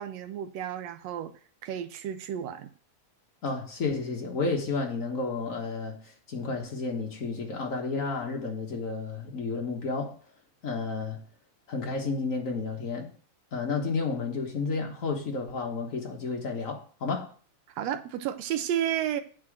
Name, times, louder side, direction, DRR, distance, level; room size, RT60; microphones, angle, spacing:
voice 1, 0.0-1.3 1.6-2.7 17.8-19.2, right 10 dB, 75° right, 1.6 m, -32 dB
voice 2, 3.4-6.0 6.3-10.2 10.6-11.2 11.7-13.1 13.5-17.3, left 4 dB, 70° left, 0.7 m, -31 dB
8.8 x 4.4 x 7.2 m
omnidirectional pair, 3.5 m